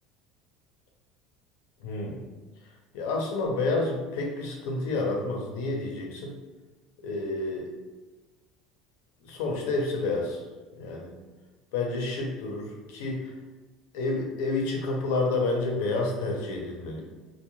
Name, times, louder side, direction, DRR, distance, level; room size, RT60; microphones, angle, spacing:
voice 1, 1.8-2.2 2.9-6.3 7.0-7.7 9.2-10.4 10.8-11.1 11.7-13.3 13.9-17.0, left 3 dB, 85° left, 0 dB, 0.6 m, -29 dB
2.3 x 2.2 x 2.9 m, 1.2 s
cardioid pair, 165°, 0 cm